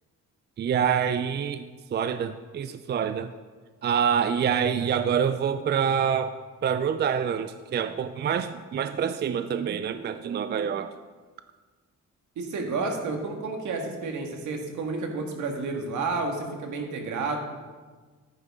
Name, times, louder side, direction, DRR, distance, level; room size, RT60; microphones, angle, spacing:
voice 1, 0.6-1.7 1.9-3.3 3.8-6.4 6.6-10.9, right 7 dB, 35° right, 10 dB, 0.4 m, -26 dB
voice 2, 12.3-17.4, right 3 dB, 75° right, 3 dB, 1.7 m, -30 dB
9.6 x 9.1 x 3.6 m, 1.4 s
cardioid pair, 90°, 30 cm